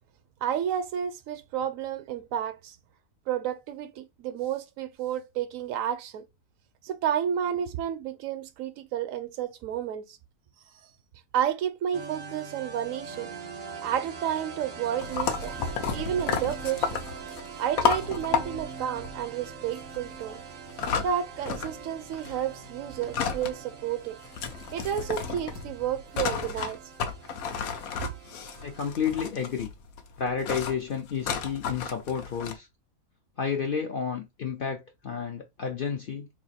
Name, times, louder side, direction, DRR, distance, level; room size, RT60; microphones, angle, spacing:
voice 1, 0.4-2.8 3.3-6.2 6.8-10.2 11.3-13.3 13.8-15.5 15.9-16.9 17.6-20.4 21.0-24.2 24.7-26.8 28.0-28.1, right 9 dB, 75° right, 0.9 m, -31 dB
sound 1, 11.9-28.9, right 6 dB, 55° right, 0.6 m, -43 dB
sound 2, 15.0-21.9 22.1-23.6 23.8-23.9 24.2-32.6, left 6 dB, 85° left, 1.1 m, -32 dB
voice 2, 28.6-29.7 30.2-32.7 33.4-36.3, left 6 dB, 60° left, 0.6 m, -31 dB
2.9 x 2.5 x 4.1 m
omnidirectional pair, 1.4 m